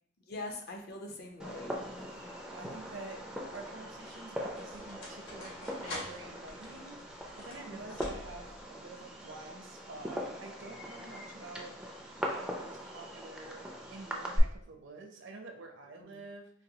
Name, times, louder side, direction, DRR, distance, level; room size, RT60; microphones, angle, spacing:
voice 1, 0.3-1.9 7.7-8.0 16.0-16.2, left 2 dB, 50° left, 3 dB, 0.5 m, -43 dB
Fireworks, 1.4-14.4, equal, 5° right, 0.3 m, -41 dB
voice 2, 2.5-3.2 3.5-11.8 12.4-16.5, right 3 dB, 60° right, 3 dB, 0.5 m, -48 dB
Key Turning in Lock, 3.3-8.6, left 1 dB, 65° left, 1.1 m, -47 dB
4.0 x 2.2 x 2.7 m, 0.64 s
head